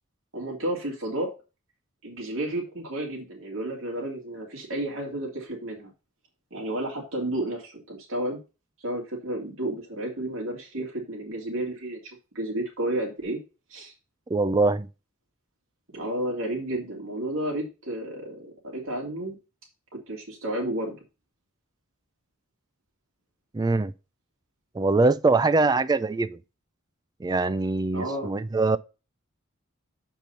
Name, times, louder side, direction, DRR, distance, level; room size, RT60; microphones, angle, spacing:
voice 1, 0.3-1.3 2.0-5.9 6.5-8.4 8.8-13.4 13.7-13.9 15.9-19.4 19.9-21.0 27.9-28.4, right 1 dB, 70° right, 2.4 m, -32 dB
voice 2, 14.3-14.9 23.5-23.9 24.8-26.4 27.2-28.8, right 3 dB, 20° right, 0.3 m, -23 dB
6.7 x 4.6 x 5.5 m
head